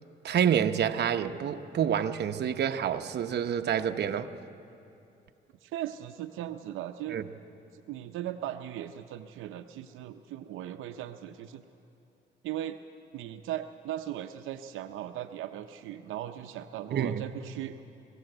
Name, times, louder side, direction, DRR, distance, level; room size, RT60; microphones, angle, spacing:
voice 1, 0.2-4.3 7.1-7.2 16.9-17.2, right 8 dB, 60° right, 7 dB, 0.9 m, -28 dB
voice 2, 5.6-7.2 7.9-11.6 12.4-12.8 13.1-17.8, right 12 dB, 85° right, 7 dB, 0.7 m, -38 dB
24.5 x 16.5 x 7.9 m, 2.8 s
cardioid pair, 90°, 20 cm